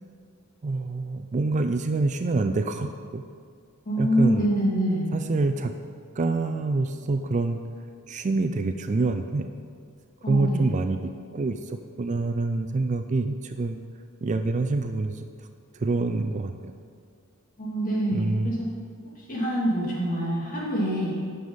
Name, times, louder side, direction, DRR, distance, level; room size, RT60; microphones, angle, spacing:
voice 1, 0.6-3.2 4.0-4.5 5.1-5.8 6.2-7.6 8.1-9.5 10.3-13.8 14.2-15.3 15.7-16.7 18.1-18.6, right 3 dB, 35° right, 7 dB, 0.4 m, -26 dB
voice 2, 3.8-5.1 10.2-10.7 17.6-18.7 19.2-21.1, equal, 40° left, -5 dB, 2.6 m, -25 dB
9.5 x 6.9 x 5.6 m, 2.2 s
head